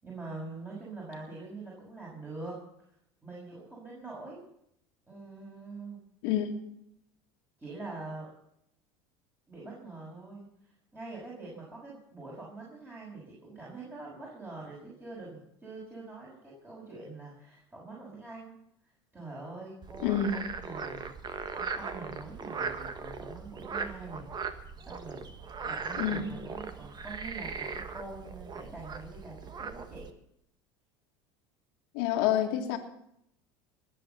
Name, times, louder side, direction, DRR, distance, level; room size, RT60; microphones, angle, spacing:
voice 1, 0.0-2.6 3.2-4.4 5.1-6.0 7.6-8.3 9.5-18.6 19.1-21.1 21.6-24.3 24.8-25.3 25.6-30.1, right 3 dB, 15° right, -5 dB, 6.2 m, -44 dB
Frog, 19.8-30.1, right 5 dB, 30° right, 1.5 m, -39 dB
voice 2, 20.0-20.3 26.0-26.2 31.9-32.8, left 10 dB, 75° left, 4 dB, 2.0 m, -27 dB
20.0 x 7.8 x 7.1 m, 0.75 s
supercardioid pair, 95°, 13 cm